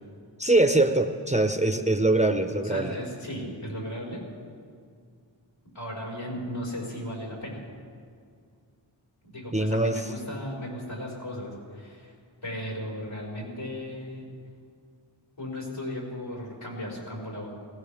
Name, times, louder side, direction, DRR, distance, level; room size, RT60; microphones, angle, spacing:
voice 1, 0.4-2.9 9.5-10.0, right 2 dB, 15° right, 7 dB, 0.7 m, -23 dB
voice 2, 2.6-4.2 5.7-7.6 9.2-12.2 12.4-14.2 15.4-17.5, equal, 80° left, -4 dB, 5.2 m, -36 dB
19.5 x 17.5 x 3.5 m, 2.2 s
wide cardioid pair, 50°, 48 cm